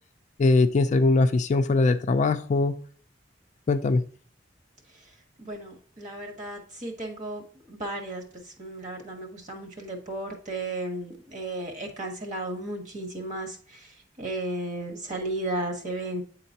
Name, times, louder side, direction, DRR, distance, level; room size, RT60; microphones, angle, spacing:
voice 1, 0.4-2.8 3.7-4.0, left 3 dB, 40° left, 9 dB, 0.4 m, -21 dB
voice 2, 5.4-16.2, right 2 dB, 40° right, 3 dB, 1.4 m, -34 dB
8.7 x 3.9 x 2.8 m, 0.43 s
head